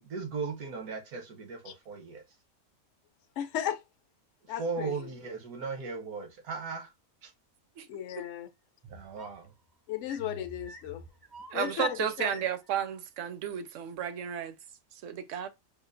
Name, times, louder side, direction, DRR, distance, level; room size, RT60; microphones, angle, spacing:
voice 1, 0.0-2.2 4.6-6.9 7.2-7.3 8.9-9.5, right 4 dB, 85° right, 1.4 m, -37 dB
voice 2, 3.4-3.8 4.5-4.9 7.9-8.5 9.9-11.0 11.5-12.4, left 11 dB, 65° left, 0.8 m, -35 dB
sound 1, 8.8-9.5 10.0-12.8, equal, 40° right, 0.3 m, -47 dB
voice 3, 11.5-14.5 15.0-15.5, right 10 dB, 70° right, 0.8 m, -33 dB
5.0 x 2.4 x 2.5 m
omnidirectional pair, 1.5 m